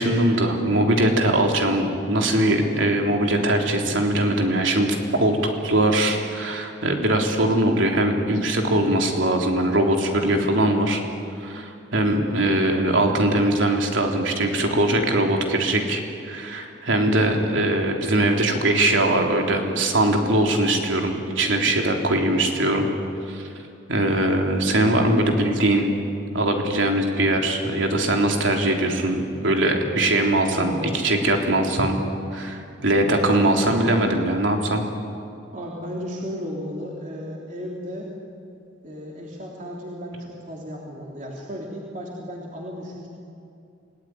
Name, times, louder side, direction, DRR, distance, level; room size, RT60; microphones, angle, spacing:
voice 1, 0.0-5.4 5.6-11.0 11.4-22.9 23.3-23.5 23.9-25.9 26.3-30.8 31.0-32.0 32.3-34.8, right 1 dB, 90° right, 2 dB, 3.5 m, -21 dB
voice 2, 30.4-30.9 33.1-33.6 35.5-38.1 38.8-43.1, equal, 40° right, -2 dB, 3.2 m, -34 dB
28.0 x 18.0 x 9.8 m, 2.6 s
head